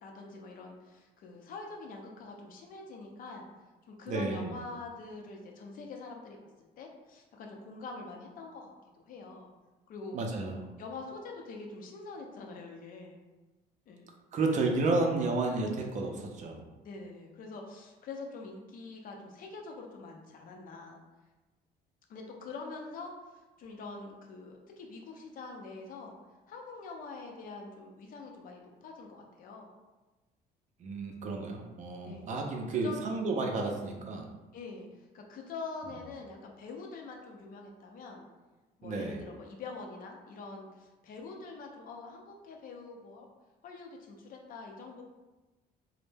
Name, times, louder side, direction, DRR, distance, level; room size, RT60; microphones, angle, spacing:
voice 1, 0.0-3.4 3.9-6.4 6.8-9.5 9.9-10.2 10.8-13.2 13.9-14.1 16.8-21.0 22.1-26.1 26.5-29.7 32.1-32.3 32.7-33.0 34.5-38.3 38.8-43.3 43.6-45.0, left 3 dB, 55° left, 1 dB, 0.5 m, -45 dB
voice 2, 4.1-4.5 10.1-10.7 14.3-16.6 30.8-34.2 38.8-39.2, right 3 dB, 45° right, 2 dB, 0.4 m, -31 dB
2.1 x 2.0 x 3.2 m, 1.1 s
cardioid pair, 110°, 17 cm